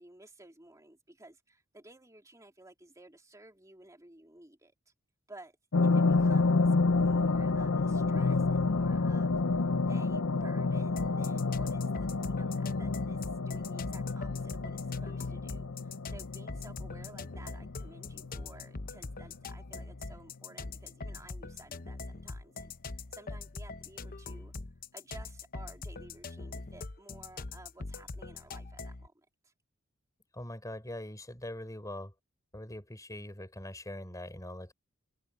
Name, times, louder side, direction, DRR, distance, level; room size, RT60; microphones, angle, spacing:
voice 1, 0.0-4.9 5.3-5.6 5.8-24.5 24.9-29.5, right 2 dB, 15° right, 3.1 m, -54 dB
sound 1, 5.7-18.7 19.1-19.2, left 3 dB, 80° left, 0.8 m, -29 dB
sound 2, 11.0-29.1, left 3 dB, 45° left, 0.8 m, -42 dB
voice 2, 30.3-32.1 32.5-34.7, left 1 dB, 15° left, 5.2 m, -42 dB
open air
head